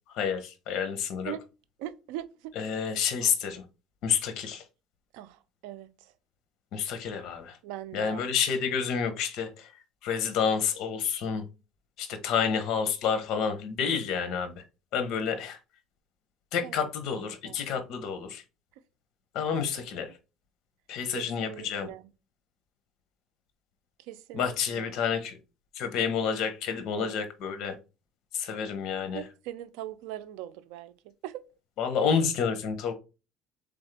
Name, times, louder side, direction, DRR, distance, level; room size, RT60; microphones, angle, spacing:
voice 1, 0.1-1.3 2.5-3.6 4.0-4.6 6.7-7.6 7.9-9.7 10.0-11.4 12.0-14.6 14.9-15.6 16.5-18.4 19.3-20.1 20.9-21.9 24.3-25.4 25.7-27.8 28.3-29.2 31.8-32.9, left 7 dB, 60° left, 1.0 m, -29 dB
voice 2, 1.8-2.5 3.2-3.3 5.1-6.1 7.6-8.2 13.9-14.2 16.6-17.6 19.8-19.9 21.1-22.1 24.1-24.9 26.9-27.1 29.1-30.9 31.2-31.5, right 13 dB, 85° right, 0.5 m, -41 dB
4.0 x 3.6 x 3.3 m
cardioid pair, 135°, 0 cm